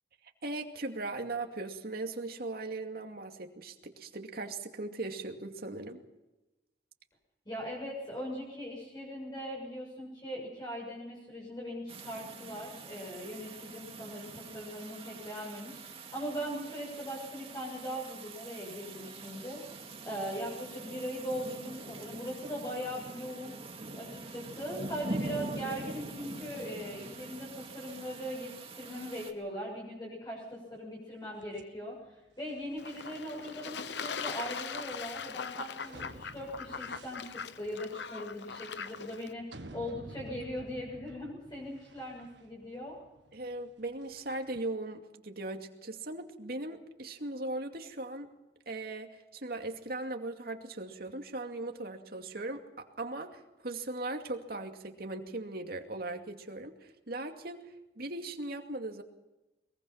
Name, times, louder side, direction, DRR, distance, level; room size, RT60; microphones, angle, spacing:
voice 1, 0.4-6.0 43.3-48.3 48.7-59.0, right 2 dB, 55° right, 4 dB, 2.5 m, -39 dB
voice 2, 7.5-19.6 20.0-23.6 23.9-43.0, equal, 25° left, -4 dB, 7.1 m, -40 dB
sound 1, 11.9-29.3, right 2 dB, 35° right, 2.3 m, -44 dB
sound 2, 31.4-44.6, right 2 dB, 80° right, 1.7 m, -53 dB
Fowl / Bird / Water, 32.8-39.3, left 6 dB, 75° left, 0.9 m, -41 dB
22.5 x 22.5 x 5.8 m, 1.0 s
head